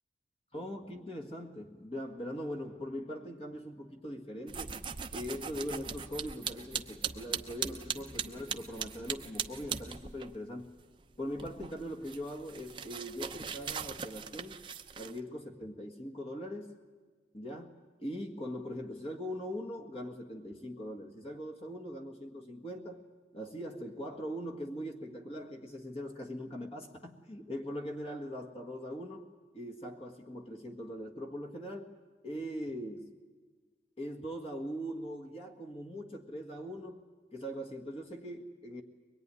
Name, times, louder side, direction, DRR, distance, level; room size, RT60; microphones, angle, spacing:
voice 1, 0.5-4.8 5.1-10.8 11.2-14.6 15.0-16.8 17.3-23.0 23.3-29.3 29.5-33.1 34.0-37.0 37.3-38.8, equal, 35° left, 1 dB, 1.6 m, -41 dB
sound 1, 4.5-10.4 10.6-15.2, right 7 dB, 30° right, 0.7 m, -40 dB
23.0 x 20.5 x 9.8 m, 1.4 s
head